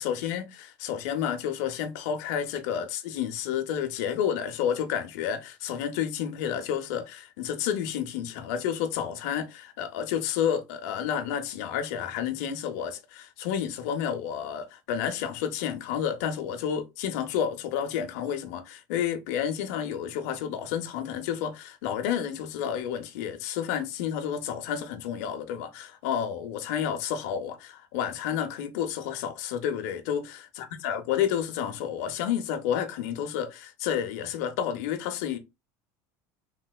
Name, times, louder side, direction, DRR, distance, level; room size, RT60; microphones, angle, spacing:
voice 1, 0.0-35.4, left 9 dB, 75° left, 0.6 m, -30 dB
3.2 x 2.8 x 2.2 m
cardioid pair, 175°, 9 cm